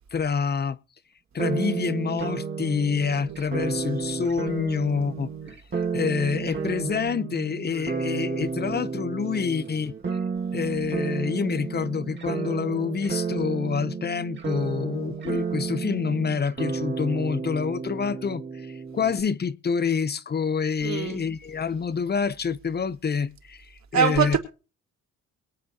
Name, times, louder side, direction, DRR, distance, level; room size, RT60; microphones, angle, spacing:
voice 1, 0.1-0.8 1.3-5.3 5.9-9.9 10.5-23.7 23.9-24.4, left 6 dB, 35° left, 0.8 m, -27 dB
sound 1, 1.4-19.2, right 5 dB, 35° right, 2.2 m, -31 dB
voice 2, 20.8-21.2 23.9-24.4, right 8 dB, 60° right, 4.2 m, -23 dB
22.5 x 9.1 x 2.9 m
cardioid pair, 90°, 30 cm